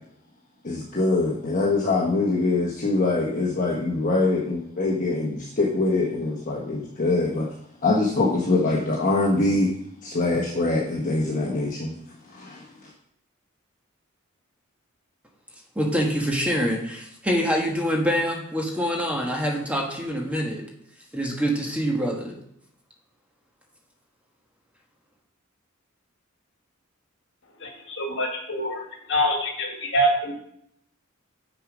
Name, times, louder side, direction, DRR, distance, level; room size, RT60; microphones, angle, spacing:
voice 1, 0.6-7.5 7.8-9.7 10.0-11.9 12.3-12.9, left 2 dB, 40° left, -3 dB, 1.2 m, -24 dB
voice 2, 15.7-20.6 21.1-22.4, equal, 5° right, 0 dB, 1.4 m, -25 dB
voice 3, 27.6-30.3, equal, 60° left, 1 dB, 1.9 m, -25 dB
7.3 x 6.6 x 5.0 m, 0.72 s
head